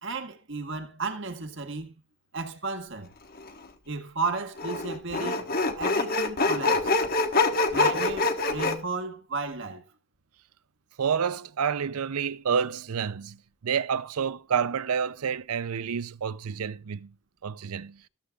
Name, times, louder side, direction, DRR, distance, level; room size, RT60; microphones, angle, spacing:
voice 1, 0.0-2.0 2.3-3.1 3.9-5.5 5.8-6.9 7.7-9.8, right 3 dB, 55° right, 1.7 m, -33 dB
Sawing, 3.4-3.5 4.6-8.8, left 3 dB, 40° left, 1.4 m, -25 dB
voice 2, 11.0-17.1 17.4-18.0, right 7 dB, 80° right, 0.5 m, -29 dB
14.5 x 13.5 x 2.4 m
head